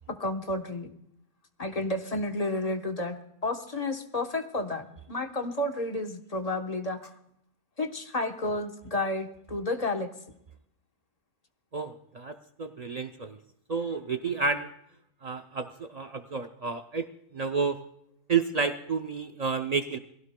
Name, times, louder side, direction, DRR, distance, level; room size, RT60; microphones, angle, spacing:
voice 1, 0.1-0.9 1.6-3.2 3.4-7.1 7.8-10.1, left 2 dB, 30° left, 5 dB, 1.0 m, -31 dB
voice 2, 11.7-13.4 13.7-14.7 15.2-17.1 17.3-17.8 18.3-20.0, right 5 dB, 85° right, 6 dB, 0.3 m, -30 dB
22.5 x 16.5 x 2.2 m, 0.74 s
omnidirectional pair, 1.5 m